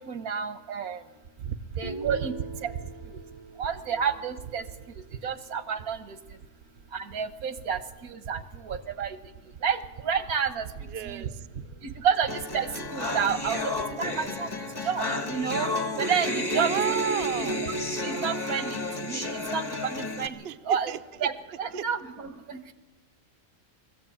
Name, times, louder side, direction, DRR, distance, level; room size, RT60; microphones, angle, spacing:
voice 1, 0.1-1.0 1.8-2.3 2.6-2.7 3.6-4.6 5.2-6.2 6.9-9.2 9.6-10.7 11.0-11.3 12.0-14.5 14.8-15.7 16.0-17.0 17.4-17.7 18.0-20.9 21.2-21.3 21.6-22.6, right 7 dB, 85° right, 11 dB, 1.8 m, -30 dB
voice 2, 1.4-2.2 2.8-2.9 8.3-8.4 10.8-12.0 16.5-17.7 20.4-21.3 21.7-21.9, right 9 dB, 55° right, 11 dB, 0.9 m, -34 dB
Guitar, 1.8-5.8, right 4 dB, 30° right, 0.5 m, -43 dB
sound 1, 12.3-20.3, left 1 dB, 15° left, 1.6 m, -31 dB
20.5 x 15.0 x 8.7 m, 1.2 s
omnidirectional pair, 1.5 m